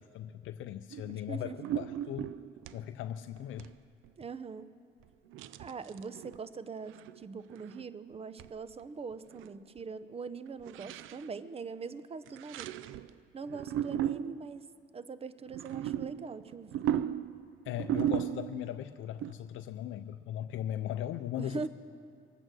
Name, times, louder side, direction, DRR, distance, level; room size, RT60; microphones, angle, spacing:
voice 1, 0.0-2.3 2.7-3.7 17.7-21.7, left 11 dB, 80° left, 9 dB, 0.5 m, -38 dB
sound 1, 0.9-1.2 1.5-2.8 3.4-3.7 4.0-4.1 5.3-6.4 6.9-7.2 7.5-7.8 8.4-8.5 8.8-8.9 9.1-9.5 9.8-9.9 10.6-11.3 12.3-13.1 13.4-14.6 15.4-18.7 19.2-19.3, right 10 dB, 90° right, 0.4 m, -36 dB
voice 2, 1.1-1.6 4.2-4.7 5.6-12.7 13.3-14.7 14.9-16.9 21.4-21.7, right 5 dB, 30° right, 14 dB, 0.7 m, -42 dB
23.5 x 8.8 x 6.3 m, 2.4 s
cardioid pair, 90°, 20 cm